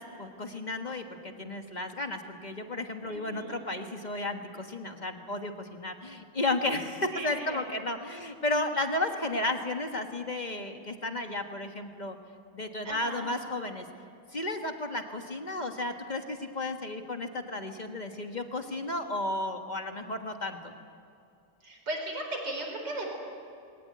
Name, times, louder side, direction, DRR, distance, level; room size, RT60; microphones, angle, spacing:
voice 1, 0.0-12.2 12.5-13.8 14.3-20.7, left 2 dB, 25° left, 5 dB, 1.3 m, -33 dB
voice 2, 3.1-3.6 7.1-7.6 12.8-13.2 21.6-23.1, right 1 dB, 60° right, 1 dB, 5.2 m, -36 dB
21.0 x 18.5 x 9.5 m, 2.5 s
omnidirectional pair, 2.2 m